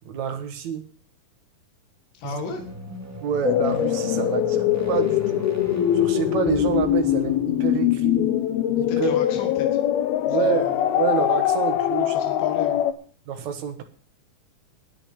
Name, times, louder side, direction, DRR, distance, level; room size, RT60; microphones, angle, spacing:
voice 1, 0.0-0.8 2.2-2.4 3.2-5.5 5.9-8.3 8.8-9.1 10.3-12.1 13.3-13.8, right 9 dB, 55° right, 7 dB, 2.5 m, -28 dB
voice 2, 2.1-2.6 8.9-9.7 10.3-10.8 11.9-12.8, left 5 dB, 60° left, 4 dB, 3.4 m, -35 dB
sound 1, 2.5-8.1, equal, 5° right, 2.3 m, -38 dB
sound 2, 3.4-12.9, left 11 dB, 85° left, 2.8 m, -22 dB
10.5 x 10.0 x 8.5 m, 0.43 s
omnidirectional pair, 4.3 m